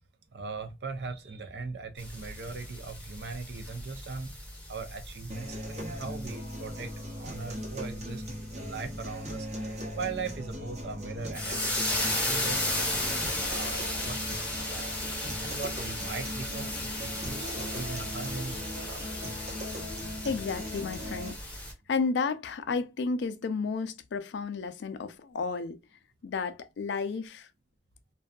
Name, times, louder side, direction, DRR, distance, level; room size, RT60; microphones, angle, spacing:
voice 1, 0.3-4.3 4.7-6.9 7.2-13.0 13.3-15.1 15.4-19.0, right 4 dB, 65° right, 0.5 m, -40 dB
sound 1, 2.0-21.7, left 1 dB, 10° left, 0.7 m, -35 dB
sound 2, 5.3-21.3, equal, 40° right, 0.8 m, -39 dB
voice 2, 20.2-21.4 21.9-25.8 26.2-27.5, left 4 dB, 75° left, 0.4 m, -32 dB
2.6 x 2.3 x 2.2 m
head